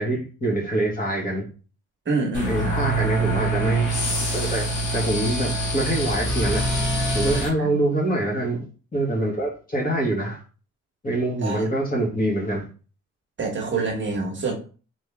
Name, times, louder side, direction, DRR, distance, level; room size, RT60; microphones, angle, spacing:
voice 1, 0.0-1.5 2.4-3.8 4.3-6.6 7.1-8.6 8.9-10.4 11.0-12.6, right 1 dB, 30° left, -3 dB, 2.3 m, -25 dB
voice 2, 2.0-2.8 7.6-7.8 11.4-11.7 13.4-14.5, right 3 dB, 40° right, 1 dB, 1.4 m, -26 dB
sound 1, 2.3-7.5, right 1 dB, 75° left, 2.0 m, -25 dB
4.0 x 3.7 x 3.5 m, 0.36 s
cardioid pair, 90°, 30 cm